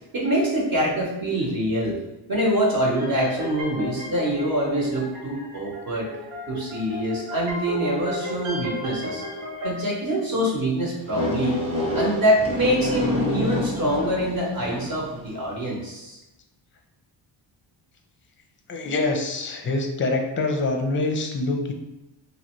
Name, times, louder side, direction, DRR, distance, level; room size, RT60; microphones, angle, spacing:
voice 1, 0.1-2.0 2.3-6.1 6.4-9.2 9.6-11.6 11.9-16.2, right 1 dB, 45° right, -4 dB, 0.9 m, -24 dB
sound 1, 3.0-9.7, left 2 dB, 90° right, 0.9 m, -34 dB
sound 2, 11.1-15.1, left 1 dB, 10° right, 0.7 m, -28 dB
voice 2, 18.7-21.7, left 2 dB, 25° left, 3 dB, 0.5 m, -25 dB
3.0 x 2.6 x 3.0 m, 0.97 s
cardioid pair, 100°, 49 cm